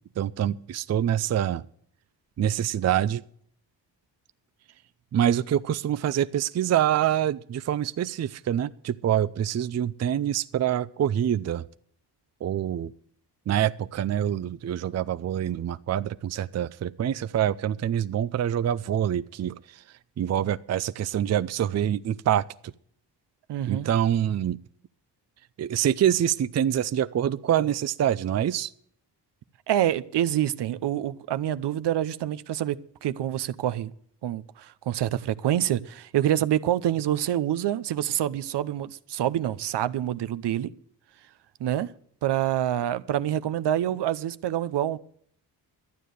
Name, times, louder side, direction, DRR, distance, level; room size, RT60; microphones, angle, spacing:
voice 1, 0.2-1.6 2.4-3.2 5.1-11.6 12.4-12.9 13.5-19.8 20.2-22.5 23.7-24.6 25.6-28.7, right 10 dB, 40° right, 0.5 m, -25 dB
voice 2, 23.5-23.9 29.7-33.9 34.2-40.7 41.6-41.9 42.2-45.0, right 11 dB, 70° right, 0.8 m, -26 dB
12.5 x 9.3 x 6.6 m
cardioid pair, 85°, 43 cm